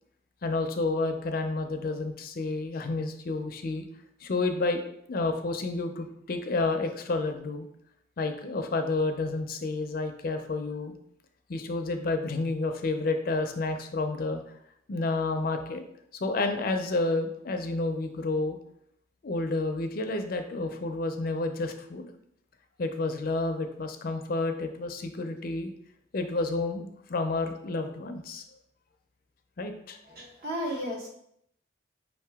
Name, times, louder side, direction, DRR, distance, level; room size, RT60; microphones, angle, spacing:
voice 1, 0.4-3.8 4.2-4.8 5.1-7.7 8.2-10.9 11.5-14.4 14.9-15.8 16.1-18.6 19.2-22.1 22.8-25.7 26.1-28.4 29.6-30.0, left 3 dB, 50° left, 6 dB, 0.4 m, -30 dB
voice 2, 30.1-31.1, equal, 50° right, 0 dB, 1.0 m, -34 dB
5.2 x 2.8 x 3.4 m, 0.73 s
head